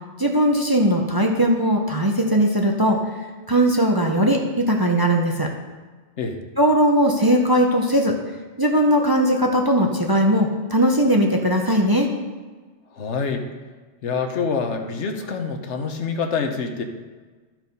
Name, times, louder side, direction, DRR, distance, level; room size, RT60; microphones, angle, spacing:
voice 1, 0.2-3.0 3.5-5.5 6.6-8.2 8.6-12.1, equal, 25° right, 1 dB, 0.7 m, -19 dB
voice 2, 12.9-13.5 14.0-16.8, left 5 dB, 75° left, 5 dB, 1.2 m, -26 dB
13.0 x 4.6 x 5.3 m, 1.4 s
omnidirectional pair, 1.2 m